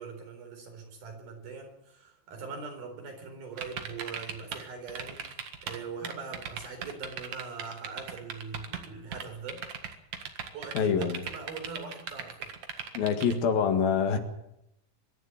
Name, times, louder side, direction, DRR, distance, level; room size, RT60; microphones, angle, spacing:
voice 1, 0.0-9.6 10.5-12.5, right 5 dB, 80° right, 4 dB, 6.1 m, -42 dB
sound 1, 3.6-4.6 4.9-5.8 6.0-8.9 9.1-13.3, right 7 dB, 55° right, 2.7 m, -38 dB
voice 2, 10.8-11.2 12.9-14.2, left 6 dB, 80° left, 7 dB, 3.7 m, -25 dB
24.0 x 11.0 x 9.9 m, 0.82 s
omnidirectional pair, 4.2 m